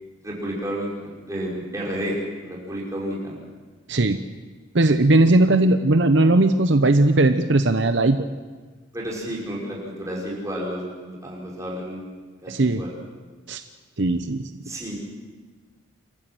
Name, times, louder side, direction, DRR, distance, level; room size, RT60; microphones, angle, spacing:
voice 1, 0.2-2.2 2.4-3.4 8.9-12.0 12.4-12.9 14.6-15.0, equal, 15° right, -5 dB, 5.7 m, -31 dB
voice 2, 3.9-4.2 4.7-8.2 12.5-12.8 13.5-13.6 14.0-14.5, right 2 dB, 65° right, 9 dB, 0.8 m, -18 dB
28.0 x 14.5 x 7.8 m, 1.4 s
head